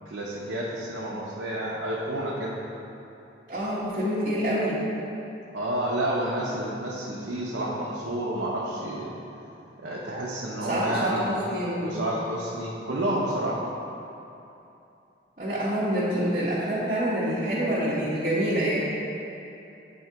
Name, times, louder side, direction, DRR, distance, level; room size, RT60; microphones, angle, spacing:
voice 1, 0.1-2.6 5.5-9.1 9.8-11.3 11.8-13.6, right 1 dB, 75° right, -6 dB, 0.7 m, -30 dB
voice 2, 3.5-4.8 10.6-12.0 15.4-18.9, equal, 40° right, -12 dB, 1.0 m, -26 dB
7.9 x 2.8 x 4.5 m, 2.8 s
head